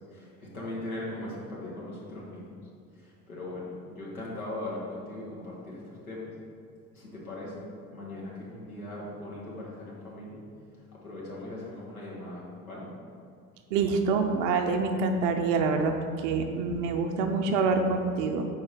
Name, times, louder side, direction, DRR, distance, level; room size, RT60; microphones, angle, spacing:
voice 1, 0.0-2.5 2.9-6.3 6.9-10.4 11.0-12.9, left 1 dB, 85° left, -5 dB, 1.3 m, -39 dB
voice 2, 13.7-18.5, right 4 dB, 60° right, 4 dB, 0.6 m, -26 dB
4.6 x 4.4 x 4.9 m, 2.3 s
figure-of-eight pair, 60°, 42 cm